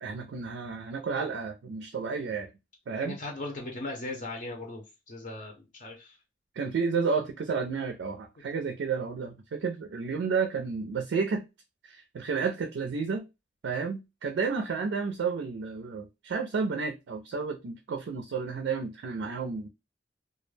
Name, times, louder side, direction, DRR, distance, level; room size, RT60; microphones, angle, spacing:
voice 1, 0.0-2.5 2.9-3.2 6.6-11.4 11.8-13.3 13.6-19.7, right 5 dB, 80° right, 0.4 m, -31 dB
voice 2, 2.9-6.1, left 2 dB, 45° left, 0.6 m, -38 dB
2.3 x 2.0 x 3.1 m
head